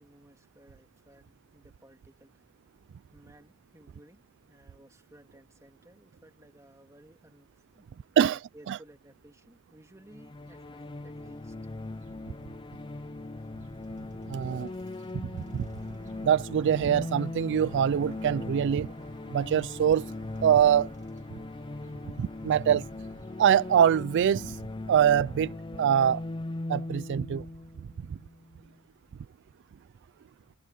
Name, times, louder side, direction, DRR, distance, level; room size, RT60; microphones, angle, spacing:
voice 1, 0.0-2.5 3.1-11.5 29.9-30.0, right 1 dB, 15° right, 2.4 m, -57 dB
sound 1, 10.1-28.7, left 2 dB, 20° left, 0.5 m, -39 dB
sound 2, 10.5-23.8, right 3 dB, 35° right, 2.0 m, -60 dB
voice 2, 14.3-14.7 15.5-15.6 16.2-18.9 19.3-20.0 20.4-20.9 22.2-22.8 23.4-24.6 24.9-25.5 25.8-26.2 26.7-27.4, right 9 dB, 55° right, 0.3 m, -23 dB
head